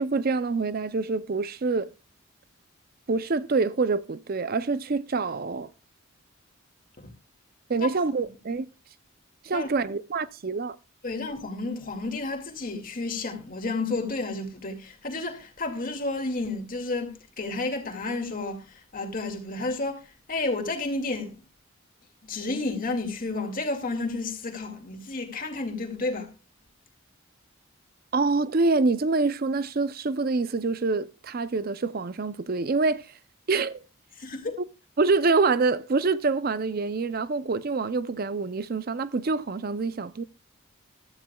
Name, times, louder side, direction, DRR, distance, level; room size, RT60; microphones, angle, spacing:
voice 1, 0.0-1.9 3.1-5.7 7.7-8.7 9.4-10.8 28.1-33.1 33.5-33.8 35.0-40.2, right 3 dB, 45° right, 0.5 m, -26 dB
voice 2, 11.0-18.6 18.9-20.0 20.3-21.4 22.2-26.3 34.2-34.6, left 3 dB, 40° left, 2.2 m, -31 dB
15.0 x 13.0 x 2.3 m
head